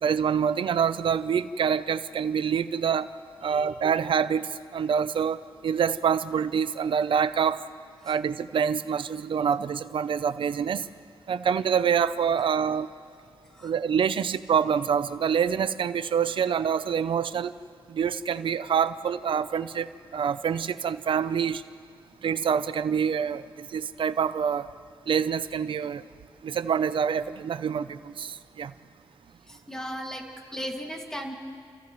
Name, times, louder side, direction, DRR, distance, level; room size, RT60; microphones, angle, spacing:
voice 1, 0.0-3.1 3.4-7.6 8.0-10.9 11.3-12.9 13.6-17.5 17.9-21.6 22.2-24.7 25.1-26.0 26.4-28.7, right 7 dB, 75° right, 13 dB, 0.6 m, -26 dB
voice 2, 29.5-31.3, equal, 5° left, 0 dB, 2.2 m, -36 dB
30.0 x 29.0 x 3.2 m, 2.2 s
wide cardioid pair, 120°, 9 cm